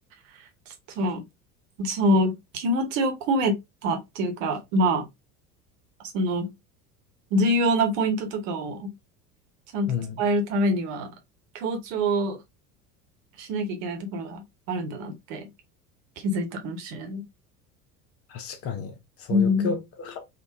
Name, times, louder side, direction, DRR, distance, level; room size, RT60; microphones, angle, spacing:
voice 1, 1.8-3.5 3.8-5.0 6.1-6.5 7.3-8.9 9.7-9.9 10.2-11.1 11.5-12.4 13.4-15.5 16.2-17.2 19.3-19.7, equal, 55° right, 1.0 m, -25 dB
voice 2, 9.9-10.2 18.3-20.2, left 6 dB, 30° left, 0.5 m, -32 dB
3.6 x 2.1 x 2.8 m
figure-of-eight pair, 70°, 47 cm